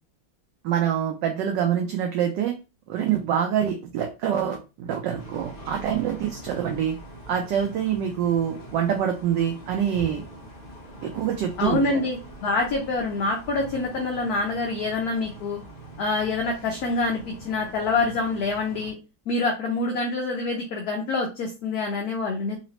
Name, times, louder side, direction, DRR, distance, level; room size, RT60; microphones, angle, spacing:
voice 1, 0.6-2.6 2.9-6.9 7.3-10.2 11.0-12.0, right 9 dB, 70° right, 3 dB, 1.2 m, -25 dB
sound 1, 5.2-18.9, right 1 dB, 30° left, 1.1 m, -43 dB
voice 2, 11.6-15.6 16.0-19.0 19.3-22.6, left 3 dB, 60° left, 1 dB, 1.1 m, -26 dB
4.0 x 2.9 x 2.9 m, 0.29 s
omnidirectional pair, 2.2 m